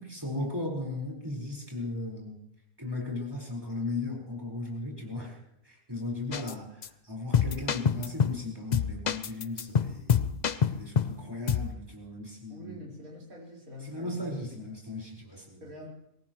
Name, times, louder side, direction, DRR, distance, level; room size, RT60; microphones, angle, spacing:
voice 1, 0.0-2.4 2.8-5.4 5.6-12.8 13.8-15.6, left 2 dB, 15° right, -2 dB, 4.9 m, -37 dB
sound 1, 6.3-6.5 6.8-6.9 7.3-8.4 8.7-11.2 11.5-11.7, left 7 dB, 55° left, 0.5 m, -26 dB
voice 2, 12.5-14.3 15.6-15.9, left 1 dB, 70° right, -3 dB, 5.2 m, -45 dB
23.5 x 18.5 x 3.1 m, 0.80 s
omnidirectional pair, 1.5 m